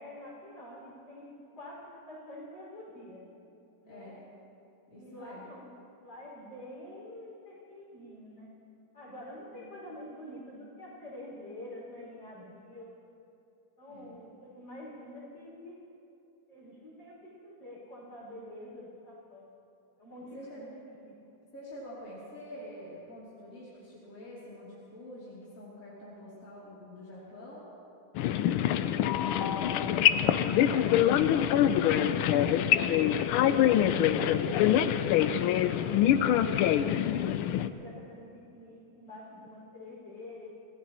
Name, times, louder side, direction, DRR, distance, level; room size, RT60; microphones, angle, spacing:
voice 1, 0.0-3.2 3.8-4.2 4.9-5.7 6.0-8.5 8.9-12.9 13.8-15.8 16.5-19.5 20.0-21.2 29.1-32.6 34.0-36.0 36.2-37.0 37.4-40.5, left 1 dB, 55° left, -6 dB, 6.0 m, -47 dB
voice 2, 3.8-4.2 4.9-5.5 9.5-9.7 13.9-14.2 20.3-20.6 21.5-27.7, left 1 dB, 35° left, -9 dB, 3.3 m, -46 dB
sound 1, 28.2-37.7, left 10 dB, 80° left, 1.4 m, -25 dB
26.0 x 17.5 x 3.0 m, 2.8 s
omnidirectional pair, 2.3 m